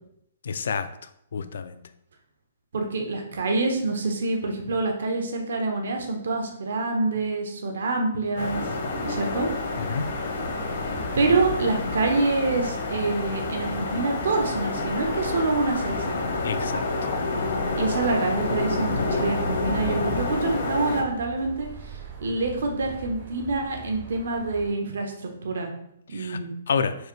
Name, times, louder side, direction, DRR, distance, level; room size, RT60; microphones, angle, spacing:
voice 1, 0.4-0.9 1.3-1.8 9.8-10.1 11.8-11.9 16.4-16.9 26.1-26.4 26.7-27.0, left 6 dB, 70° left, 11 dB, 0.3 m, -28 dB
voice 2, 2.7-8.6 9.0-9.5 11.1-16.2 17.8-25.7 26.1-26.5, right 3 dB, 75° right, 3 dB, 0.8 m, -26 dB
sound 1, 8.4-21.0, left 3 dB, 55° left, 0.7 m, -28 dB
sound 2, 8.5-24.7, right 5 dB, 40° right, 0.6 m, -42 dB
4.6 x 2.7 x 3.1 m, 0.76 s
hypercardioid pair, 170°, 0 cm